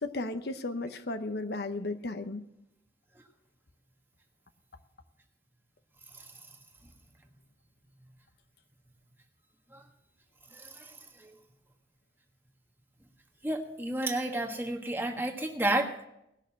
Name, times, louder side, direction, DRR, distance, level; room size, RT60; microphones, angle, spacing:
voice 1, 0.0-2.4, left 2 dB, 60° left, 8 dB, 0.9 m, -34 dB
voice 2, 10.5-11.4 13.4-16.0, right 1 dB, 10° right, 2 dB, 1.4 m, -32 dB
18.5 x 6.6 x 7.5 m, 0.83 s
head